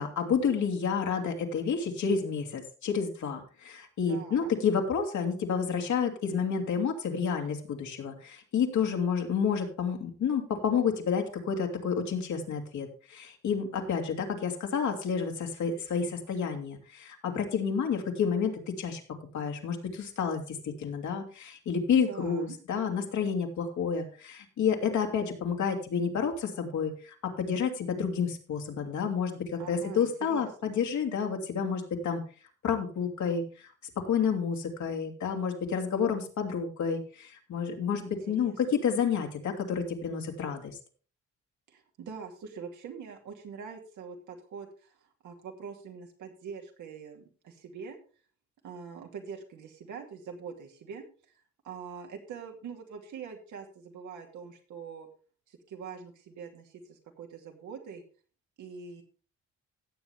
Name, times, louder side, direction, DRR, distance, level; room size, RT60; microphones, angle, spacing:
voice 1, 0.0-18.5 18.8-19.0 19.3-32.2 32.6-33.7 34.0-40.8, left 6 dB, 70° left, 3 dB, 2.6 m, -30 dB
voice 2, 4.1-4.5 22.1-22.6 29.6-30.7 38.0-38.5 41.7-48.0 48.6-51.0 51.6-55.1 55.5-58.0 58.6-59.0, right 6 dB, 75° right, 2 dB, 2.6 m, -44 dB
16.5 x 7.4 x 3.5 m, 0.38 s
cardioid pair, 90°, 30 cm